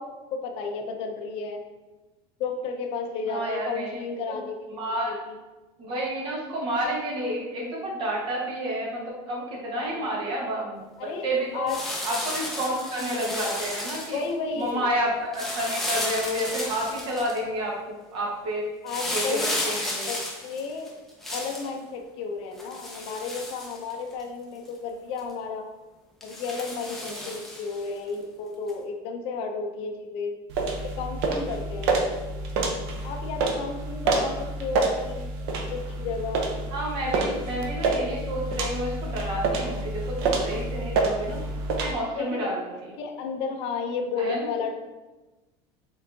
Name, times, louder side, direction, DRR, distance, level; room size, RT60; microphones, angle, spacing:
voice 1, 0.0-1.6 2.4-4.8 5.1-5.4 9.7-10.0 11.0-11.3 11.5-11.8 14.1-14.9 18.8-19.5 20.1-20.9 21.3-25.7 26.2-30.3 30.8-32.3 33.0-35.3 35.7-36.5 42.2-42.5 43.0-44.7, left 4 dB, 45° left, 3 dB, 0.4 m, -33 dB
voice 2, 3.3-4.0 4.3-4.4 4.8-5.1 5.8-11.6 12.0-14.2 14.6-18.7 19.1-20.1 27.0-27.3 34.2-34.3 36.7-41.4 41.8-42.8 44.2-44.5, right 1 dB, 40° right, -2 dB, 1.2 m, -30 dB
sound 1, 11.7-14.3 15.3-17.4 18.9-21.7 22.6-24.2 24.7-24.8 25.2-25.3 26.2-27.8 28.7-28.8, left 1 dB, 5° left, 0.6 m, -33 dB
sound 2, 30.5-41.9, right 3 dB, 80° right, 0.7 m, -28 dB
4.5 x 3.7 x 2.6 m, 1.1 s
cardioid pair, 170°, 13 cm